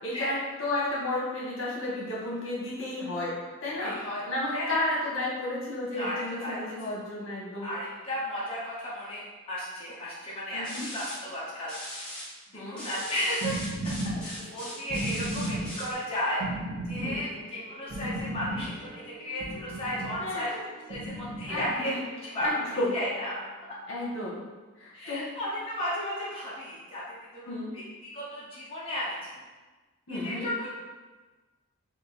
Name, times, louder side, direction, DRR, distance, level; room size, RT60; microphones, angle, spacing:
voice 1, 0.0-3.3 3.6-4.0 4.2-7.7 10.5-10.9 12.5-12.8 17.0-17.2 20.2-20.6 21.5-22.0 22.4-22.9 23.9-24.4 24.8-25.3 27.5-27.7 30.1-30.5, left 1 dB, 65° left, -5 dB, 1.2 m, -32 dB
voice 2, 3.8-4.2 4.5-4.8 5.9-6.7 7.6-12.1 12.5-13.6 14.2-16.5 16.8-20.5 20.9-21.9 22.2-22.5 22.9-23.5 24.9-29.3 30.1-30.7, left 1 dB, 25° left, -9 dB, 0.9 m, -34 dB
sound 1, 10.6-11.1 11.7-12.2 12.8-15.9, left 1 dB, 5° left, 1.1 m, -39 dB
sound 2, 12.9-20.2 20.8-21.7 22.4-22.5, right 1 dB, 85° right, 1.1 m, -35 dB
Wind instrument woodwind instrument, 17.1-23.9, left 1 dB, 30° right, 1.0 m, -51 dB
3.8 x 2.6 x 4.1 m, 1.3 s
head